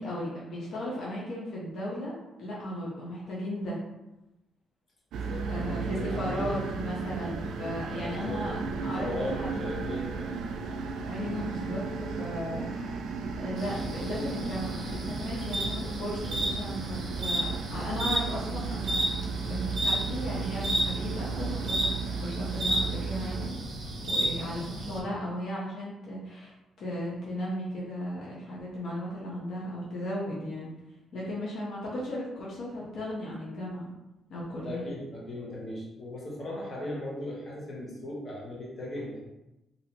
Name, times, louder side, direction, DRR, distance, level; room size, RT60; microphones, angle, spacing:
voice 1, 0.0-2.1 2.4-3.8 5.4-8.5 8.8-9.7 11.0-13.0 13.4-19.0 19.4-22.0 22.2-23.5 24.0-30.7 31.1-33.9 34.3-34.9, equal, 65° left, -6 dB, 1.0 m, -36 dB
sound 1, 5.1-23.5, right 5 dB, 80° right, 0.3 m, -35 dB
voice 2, 5.2-6.6 7.9-8.4 8.8-10.6 34.6-39.2, left 1 dB, 35° left, -5 dB, 1.2 m, -38 dB
sound 2, 13.6-25.0, right 1 dB, 55° right, 0.8 m, -33 dB
3.3 x 2.7 x 2.9 m, 0.96 s
cardioid pair, 90°, 0 cm